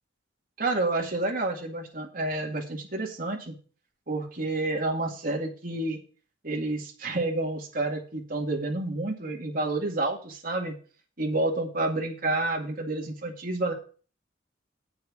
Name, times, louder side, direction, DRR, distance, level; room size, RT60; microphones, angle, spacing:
voice 1, 0.6-3.5 4.1-6.0 6.4-10.7 11.2-13.7, right 2 dB, 45° right, 0 dB, 2.2 m, -29 dB
8.2 x 6.3 x 8.3 m, 0.40 s
head